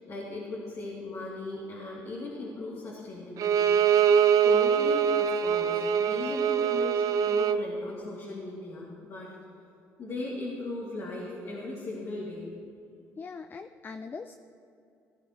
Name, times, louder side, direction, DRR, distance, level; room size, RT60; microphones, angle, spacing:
voice 1, 0.0-3.8 4.0-9.3 10.0-12.5, left 2 dB, 55° left, -7 dB, 2.9 m, -38 dB
Bowed string instrument, 3.4-7.6, right 7 dB, 65° right, 0.5 m, -23 dB
voice 2, 13.2-14.4, left 4 dB, 30° left, 9 dB, 0.4 m, -41 dB
17.5 x 11.0 x 3.2 m, 2.5 s
supercardioid pair, 75°, 6 cm